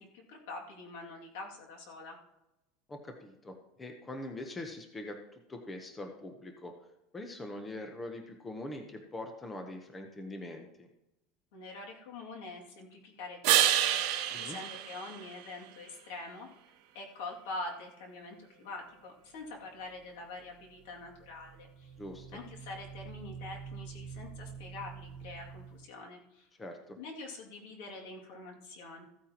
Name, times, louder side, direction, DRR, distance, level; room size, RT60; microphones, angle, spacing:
voice 1, 0.0-2.2 11.5-16.5 16.9-21.9 22.3-26.5 27.0-29.0, left 2 dB, 70° left, 0 dB, 2.4 m, -45 dB
voice 2, 2.9-5.2 5.5-6.7 7.1-10.9 14.3-14.6 22.0-22.4 26.6-27.0, left 1 dB, 15° left, 4 dB, 0.9 m, -43 dB
sound 1, 13.4-16.0 21.7-25.7, right 12 dB, 60° right, 1.2 m, -33 dB
15.0 x 8.8 x 3.0 m, 0.90 s
supercardioid pair, 160°, 0 cm